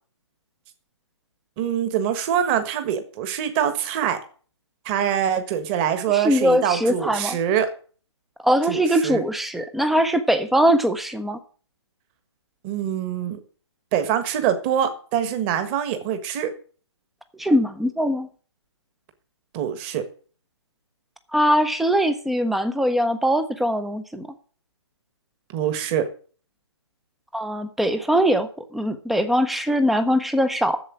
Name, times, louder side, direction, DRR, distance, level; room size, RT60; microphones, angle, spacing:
voice 1, 1.6-4.2 4.8-7.7 8.7-9.2 12.6-13.4 13.9-16.5 19.5-20.0 25.5-26.1, right 9 dB, 25° right, 9 dB, 1.4 m, -24 dB
voice 2, 6.1-7.4 8.4-11.4 17.4-18.3 21.3-24.3 27.3-30.8, equal, ahead, 10 dB, 0.6 m, -21 dB
7.7 x 7.4 x 8.5 m, 0.42 s
figure-of-eight pair, 145°, 15 cm